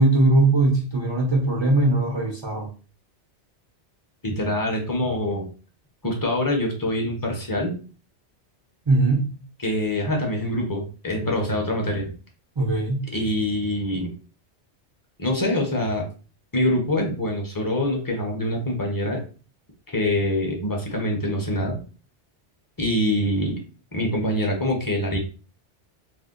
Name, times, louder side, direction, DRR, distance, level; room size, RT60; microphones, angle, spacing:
voice 1, 0.0-2.7 8.9-9.5 12.6-13.1, right 2 dB, 40° right, 0.4 m, -20 dB
voice 2, 4.2-5.5 6.0-7.8 9.6-12.1 13.1-14.1 15.2-16.0 16.5-19.2 19.9-21.8 22.8-23.6 23.9-25.2, left 1 dB, 25° left, 0.6 m, -25 dB
2.6 x 2.1 x 3.6 m
omnidirectional pair, 1.2 m